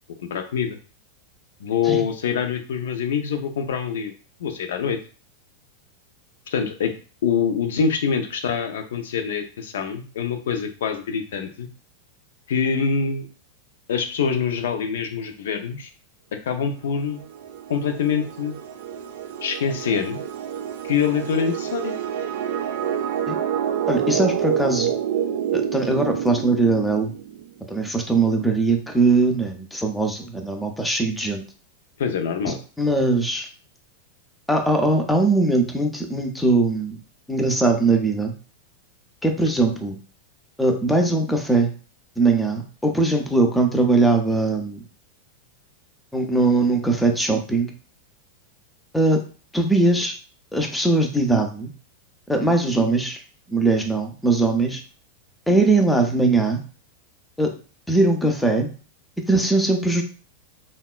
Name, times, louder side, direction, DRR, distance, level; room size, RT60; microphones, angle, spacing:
voice 1, 0.2-0.8 1.6-4.1 4.4-5.0 6.5-6.9 7.2-11.7 12.5-13.3 13.9-15.9 16.5-17.2 17.7-18.5 19.4-20.2 20.8-21.9 32.0-32.6, left 6 dB, 60° left, 6 dB, 0.5 m, -25 dB
sound 1, 17.0-27.5, right 9 dB, 55° right, 0.3 m, -28 dB
voice 2, 23.9-24.9 25.5-27.1 27.7-31.4 32.5-33.5 34.5-37.0 37.3-38.3 39.2-40.0 40.6-41.7 42.2-44.8 46.1-47.7 48.9-49.2 49.5-50.2 50.5-51.7 52.3-53.2 53.5-54.8 55.5-56.6 57.4-57.5 57.9-58.7 59.3-60.0, right 2 dB, 5° left, 4 dB, 0.5 m, -20 dB
3.4 x 2.2 x 2.3 m, 0.38 s
figure-of-eight pair, 90°, 0 cm